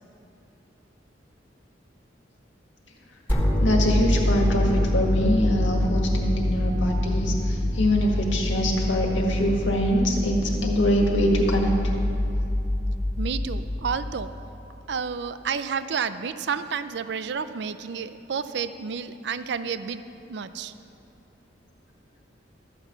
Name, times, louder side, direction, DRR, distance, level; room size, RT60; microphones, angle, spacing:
sound 1, 3.3-14.3, left 1 dB, 10° left, 1.5 m, -25 dB
voice 1, 3.6-11.7, equal, 85° left, 0 dB, 1.8 m, -24 dB
voice 2, 13.2-14.3 14.9-20.0 20.3-20.7, right 6 dB, 65° right, 12 dB, 0.4 m, -30 dB
13.0 x 5.8 x 8.0 m, 2.9 s
head